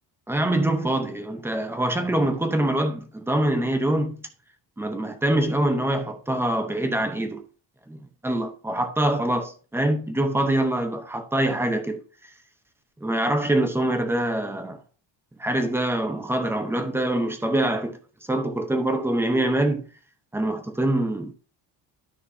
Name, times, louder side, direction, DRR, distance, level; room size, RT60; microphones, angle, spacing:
voice 1, 0.3-4.2 4.8-7.4 7.9-12.0 13.0-14.8 15.4-18.0 18.3-19.8 20.3-21.3, right 1 dB, 5° right, 0.8 m, -24 dB
12.5 x 6.0 x 2.8 m
cardioid pair, 170°, 44 cm